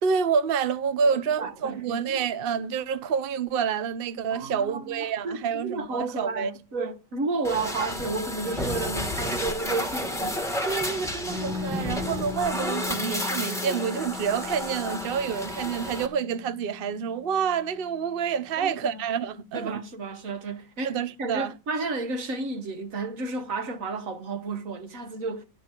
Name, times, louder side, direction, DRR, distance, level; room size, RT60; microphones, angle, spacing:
voice 1, 0.0-6.5 10.7-19.8 20.8-21.5, right 6 dB, 75° right, 0.5 m, -28 dB
voice 2, 1.1-2.2 4.3-10.4 18.6-19.0 19.5-25.4, right 3 dB, 50° right, 1.5 m, -32 dB
sound 1, 7.4-16.1, left 1 dB, ahead, 1.5 m, -31 dB
Piano, 11.3-18.6, left 5 dB, 85° left, 1.6 m, -39 dB
12.0 x 5.4 x 8.9 m
omnidirectional pair, 2.0 m